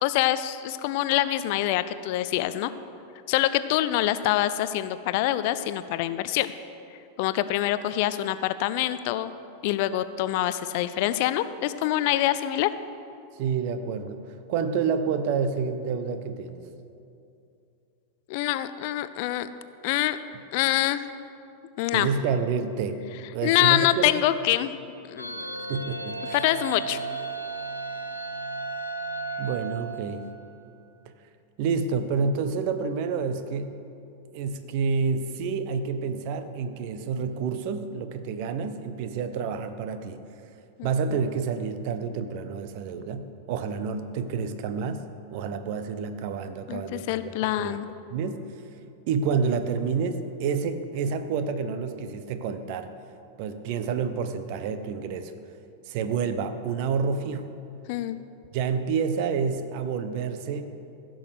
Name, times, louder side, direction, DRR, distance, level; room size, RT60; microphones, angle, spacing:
voice 1, 0.0-2.7 3.3-6.5 7.2-9.3 9.6-12.7 18.3-19.5 19.8-20.2 20.5-21.0 21.8-22.1 23.4-24.7 25.1-25.5 26.3-27.0 40.8-40.9 46.7-47.9 57.9-58.2, left 14 dB, 45° left, 13 dB, 0.5 m, -25 dB
voice 2, 13.4-16.7 21.9-23.0 23.3-24.1 25.7-26.4 29.4-30.2 31.6-33.8 34.3-40.2 40.8-47.3 47.6-47.8 48.1-48.4 49.1-52.9 53.4-55.3 55.9-57.4 58.5-60.7, right 5 dB, 45° right, 10 dB, 0.8 m, -29 dB
sound 1, 25.2-30.6, right 3 dB, 85° left, 0.7 m, -34 dB
15.5 x 6.4 x 6.8 m, 2.6 s
figure-of-eight pair, 90°, 0 cm